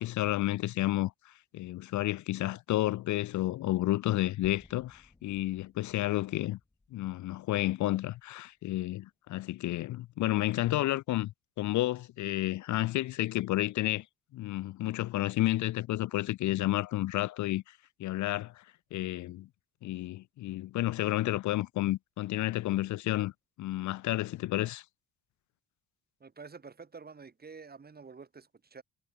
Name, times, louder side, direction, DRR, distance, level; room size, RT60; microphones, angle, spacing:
voice 1, 0.0-6.6 6.9-11.3 11.6-14.0 14.3-18.6 18.9-19.5 19.8-23.3 23.6-24.8, left 16 dB, 75° left, 0.6 m, -31 dB
sound 1, 4.4-8.7, left 2 dB, 15° left, 2.7 m, -59 dB
voice 2, 26.2-28.8, right 5 dB, 30° right, 3.5 m, -49 dB
cardioid pair, 90°, 30 cm